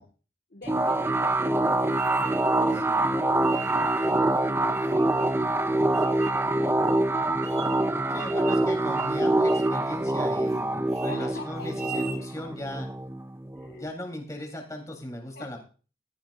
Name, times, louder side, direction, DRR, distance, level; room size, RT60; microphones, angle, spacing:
voice 1, 0.5-7.2 11.1-11.7 13.6-13.9 15.4-15.6, left 2 dB, 60° left, 3 dB, 1.7 m, -46 dB
sound 1, 0.7-13.9, right 2 dB, 15° right, 0.5 m, -25 dB
sound 2, 1.9-2.8 3.4-4.2 4.7-5.5 5.9-6.4 6.9-7.0 7.4-7.9 8.2-8.7 9.0-9.2 9.5-9.8 10.2-10.6 10.9-11.1 11.6-12.2, right 7 dB, 35° right, 1.7 m, -42 dB
voice 2, 2.8-3.1 8.1-12.9 13.8-15.6, left 1 dB, 20° left, 2 dB, 3.4 m, -38 dB
14.5 x 14.5 x 2.5 m, 0.36 s
head